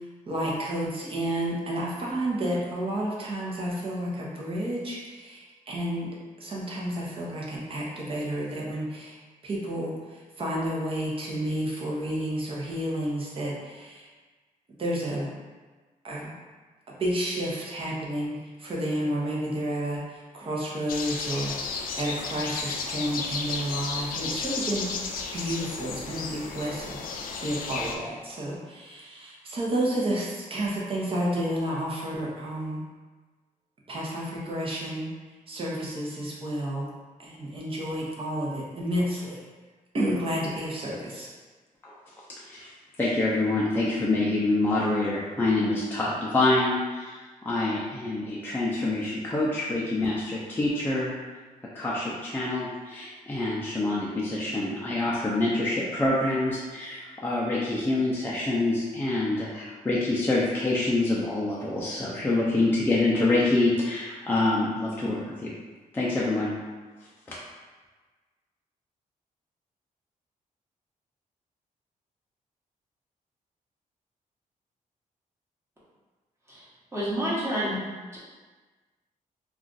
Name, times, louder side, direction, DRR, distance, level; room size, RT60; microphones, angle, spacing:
voice 1, 0.3-6.1 6.4-9.1 9.4-9.9 10.4-14.1 14.8-15.3 16.0-16.3 17.0-20.0 20.3-32.8 33.9-35.1 35.5-36.9 37.2-39.4 39.9-41.3, right 1 dB, 40° right, -4 dB, 0.8 m, -31 dB
sound 1, 20.9-27.9, left 4 dB, 80° left, 0.4 m, -33 dB
voice 2, 42.4-42.7 43.0-51.1 51.7-65.5 65.9-66.5 67.3-67.4, left 2 dB, 15° left, -6 dB, 0.4 m, -26 dB
voice 3, 76.9-77.8 78.1-78.2, equal, 20° right, -8 dB, 1.0 m, -28 dB
2.4 x 2.4 x 3.8 m, 1.3 s
cardioid pair, 120°, 14 cm